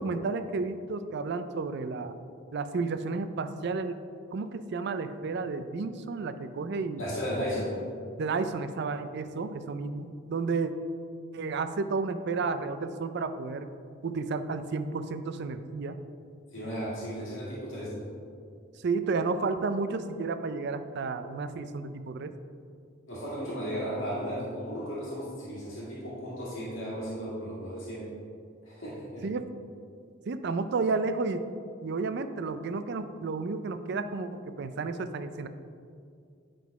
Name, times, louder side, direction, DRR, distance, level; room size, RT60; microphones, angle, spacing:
voice 1, 0.0-2.1 2.5-4.0 4.3-7.0 8.2-10.7 11.3-13.7 14.0-16.0 18.8-22.4 29.2-29.5 30.3-31.5 31.8-35.5, right 4 dB, 60° right, 10 dB, 0.4 m, -32 dB
voice 2, 7.0-7.8 16.5-18.1 23.1-28.1 28.6-29.3, equal, 90° left, -7 dB, 1.8 m, -35 dB
9.3 x 3.9 x 4.7 m, 2.3 s
head